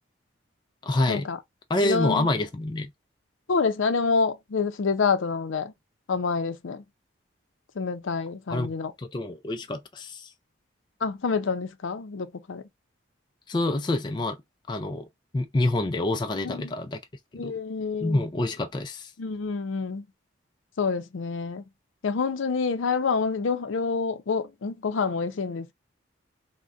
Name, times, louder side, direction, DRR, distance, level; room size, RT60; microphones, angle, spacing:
voice 1, 0.8-1.3 1.7-2.9 8.5-8.7 9.0-10.3 13.5-14.4 14.7-15.1 15.3-17.0 17.4-17.5 18.0-19.1, left 2 dB, 25° left, 0.3 m, -27 dB
voice 2, 1.8-2.3 3.5-5.7 6.1-6.8 7.8-8.9 11.0-12.6 17.3-18.2 19.2-20.0 20.8-21.6 22.0-25.7, left 5 dB, 80° left, 0.5 m, -27 dB
3.7 x 2.1 x 2.4 m
head